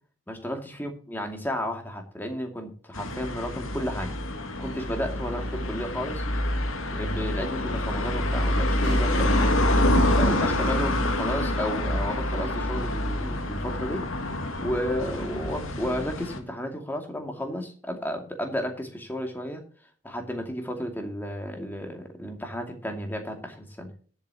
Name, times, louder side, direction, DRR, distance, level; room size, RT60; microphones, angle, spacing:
voice 1, 0.3-4.1 4.6-6.3 6.9-9.7 10.1-14.1 14.6-19.6 20.0-23.9, equal, 10° left, 3 dB, 2.4 m, -33 dB
sound 1, 2.9-16.4, left 1 dB, 80° left, 2.4 m, -26 dB
sound 2, 4.8-5.3 8.8-9.6, right 2 dB, 50° right, 2.5 m, -43 dB
20.5 x 8.3 x 2.9 m, 0.41 s
head